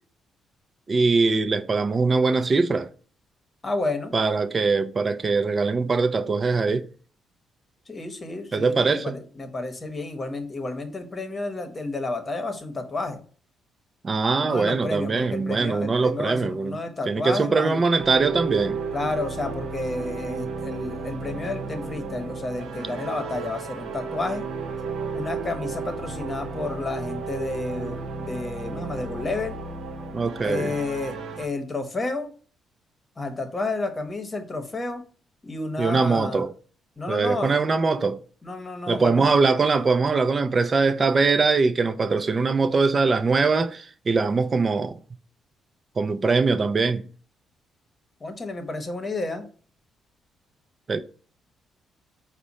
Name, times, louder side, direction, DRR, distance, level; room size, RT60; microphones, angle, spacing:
voice 1, 0.9-2.9 4.1-6.9 8.5-9.1 14.0-16.8 17.1-18.8 30.1-30.7 35.8-36.5 37.1-38.2 38.9-45.0 46.0-47.0 50.9-51.0, right 4 dB, 35° right, 0.5 m, -22 dB
voice 2, 3.6-4.2 7.9-13.2 14.3-17.9 18.9-24.5 25.1-29.6 30.4-32.3 33.2-35.0 35.4-36.5 37.0-37.6 38.4-39.3 48.2-49.5, left 2 dB, 25° left, 1.0 m, -31 dB
sound 1, 18.0-31.5, right 4 dB, 75° right, 0.8 m, -33 dB
4.9 x 2.2 x 4.1 m
cardioid pair, 90°, 0 cm